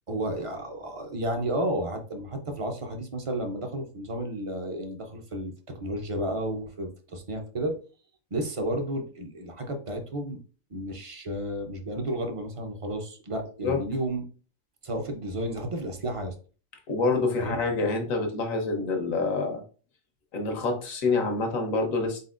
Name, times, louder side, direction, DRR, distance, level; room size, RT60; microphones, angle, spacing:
voice 1, 0.1-5.5 5.8-7.8 8.3-10.4 10.7-14.3 14.8-16.3 17.4-17.6, right 1 dB, 35° right, 5 dB, 0.5 m, -32 dB
voice 2, 16.9-19.6 20.3-22.2, left 3 dB, 90° left, 3 dB, 1.4 m, -27 dB
4.2 x 4.1 x 2.5 m, 0.38 s
omnidirectional pair, 1.4 m